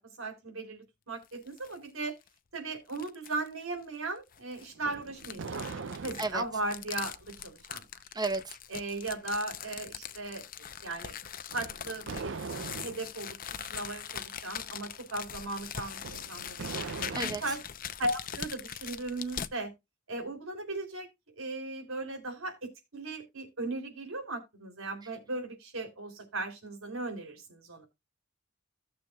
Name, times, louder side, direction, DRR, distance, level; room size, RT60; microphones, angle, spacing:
voice 1, 0.0-2.1 2.5-7.8 8.7-11.1 11.5-12.4 12.8-17.6 18.0-19.7 20.1-21.1 21.4-22.6 22.9-27.9, right 2 dB, 80° right, 4.1 m, -37 dB
sound 1, 1.2-1.8 2.2-2.3 2.9-3.5 4.3-19.5, left 9 dB, 45° left, 0.7 m, -42 dB
sound 2, 4.8-6.5 11.5-13.1 15.9-17.7, right 4 dB, 65° right, 0.6 m, -41 dB
voice 2, 6.2-6.4 8.2-8.4 17.1-17.4, right 3 dB, 20° right, 0.9 m, -31 dB
17.0 x 6.9 x 2.4 m
head